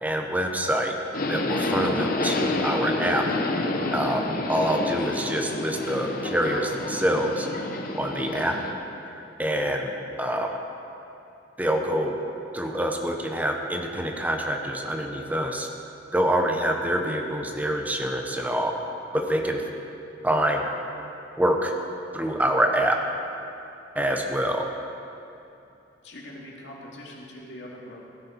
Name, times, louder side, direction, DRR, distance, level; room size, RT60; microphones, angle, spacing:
voice 1, 0.0-0.9 1.3-3.2 3.9-7.5 7.9-8.6 9.1-10.6 11.6-12.2 12.5-15.7 16.1-18.7 19.1-19.6 20.2-20.7 21.4-21.7 22.1-23.0 23.9-24.7, equal, 10° right, 2 dB, 0.9 m, -26 dB
Subway metro underground, 1.1-8.7, left 2 dB, 50° left, 1.0 m, -28 dB
voice 2, 26.0-28.1, left 1 dB, 70° left, -3 dB, 2.4 m, -42 dB
16.5 x 10.5 x 4.5 m, 2.8 s
head